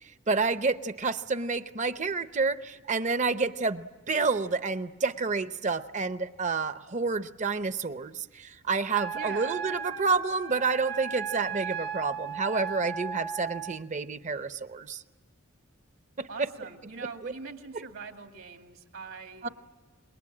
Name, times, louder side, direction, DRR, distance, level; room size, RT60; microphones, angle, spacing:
voice 1, 0.0-15.0 16.2-16.5 17.2-17.3 19.4-19.5, right 4 dB, 35° right, 12 dB, 0.7 m, -29 dB
Wind instrument woodwind instrument, 8.9-13.8, right 7 dB, 55° right, 1.0 m, -36 dB
voice 2, 9.1-9.7 16.3-19.5, right 4 dB, 70° right, 4 dB, 2.5 m, -42 dB
27.0 x 22.0 x 8.8 m, 1.3 s
head